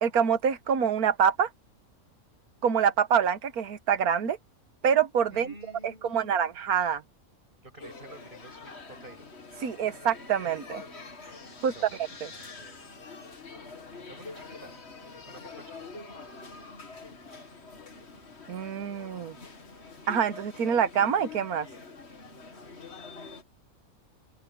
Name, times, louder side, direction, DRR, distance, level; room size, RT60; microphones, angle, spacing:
voice 1, 0.0-1.5 2.6-4.4 4.8-5.5 5.8-7.0 9.6-10.8 11.6-11.7 12.2-12.3 18.5-19.3 20.1-21.7, right 7 dB, 85° right, 1.6 m, -26 dB
voice 2, 5.3-6.5 7.6-9.3 11.7-12.8 14.1-14.7 15.1-16.0, right 1 dB, 35° right, 6.3 m, -50 dB
sound 1, 7.8-23.4, left 4 dB, 45° left, 2.2 m, -46 dB
open air
omnidirectional pair, 1.5 m